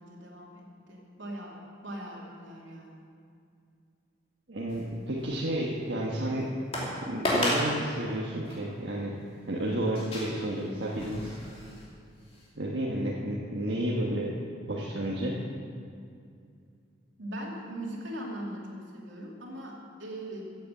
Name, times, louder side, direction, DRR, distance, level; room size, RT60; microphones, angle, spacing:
voice 1, 0.0-3.0 17.2-20.5, right 1 dB, 80° right, -2 dB, 2.8 m, -40 dB
voice 2, 4.5-6.6 6.8-9.1 9.5-11.4 12.6-14.3 14.7-15.4, right 1 dB, 65° right, -4 dB, 1.4 m, -31 dB
sound 1, 4.7-5.3 5.8-5.9 6.7-6.9 7.2-7.7 8.4-8.6 9.9-11.9 12.3-12.4, left 1 dB, 30° left, 2.8 m, -32 dB
15.5 x 8.4 x 7.3 m, 2.3 s
head